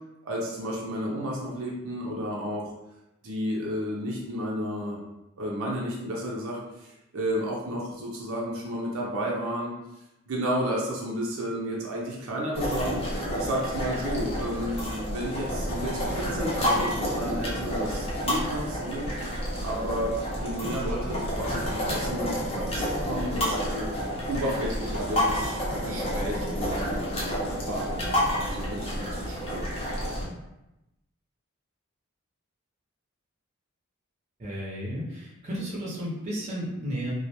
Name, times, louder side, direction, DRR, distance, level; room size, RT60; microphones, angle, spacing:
voice 1, 0.2-2.7 3.2-5.0 5.4-6.9 7.1-9.7 10.3-19.1 19.6-23.9 24.3-27.0 27.6-29.8, equal, 75° right, -3 dB, 0.5 m, -32 dB
sound 1, 12.5-30.2, equal, 25° left, 0.6 m, -29 dB
voice 2, 34.4-37.1, equal, 30° right, -6 dB, 0.6 m, -33 dB
2.3 x 2.1 x 2.8 m, 0.91 s
head